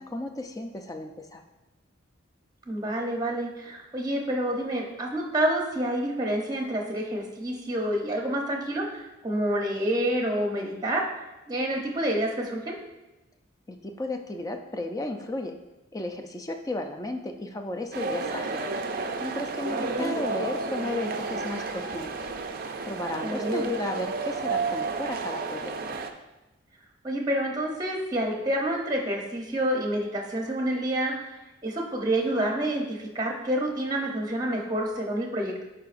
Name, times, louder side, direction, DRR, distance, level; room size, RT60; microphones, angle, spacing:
voice 1, 0.0-1.4 13.7-15.6 15.9-18.7 19.2-22.3 22.8-25.7, left 1 dB, 20° left, 4 dB, 0.4 m, -34 dB
voice 2, 2.7-8.9 9.2-11.0 11.5-12.8 19.9-20.1 23.2-23.7 27.0-31.3 31.6-35.6, right 1 dB, 20° right, 1 dB, 0.8 m, -28 dB
sound 1, 17.9-26.1, right 3 dB, 45° right, 0.4 m, -31 dB
11.0 x 4.7 x 2.5 m, 1.0 s
head